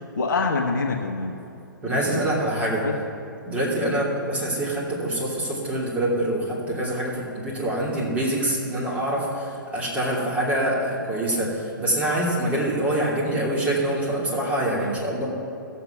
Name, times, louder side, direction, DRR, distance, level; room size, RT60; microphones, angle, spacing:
voice 1, 0.2-1.4 1.8-2.4 2.8-3.0 3.8-4.0, left 3 dB, 60° left, 2 dB, 1.2 m, -26 dB
voice 2, 1.8-2.9 3.4-15.3, right 1 dB, 10° right, -5 dB, 2.9 m, -25 dB
15.5 x 7.1 x 6.0 m, 2.7 s
figure-of-eight pair, 120°, 11 cm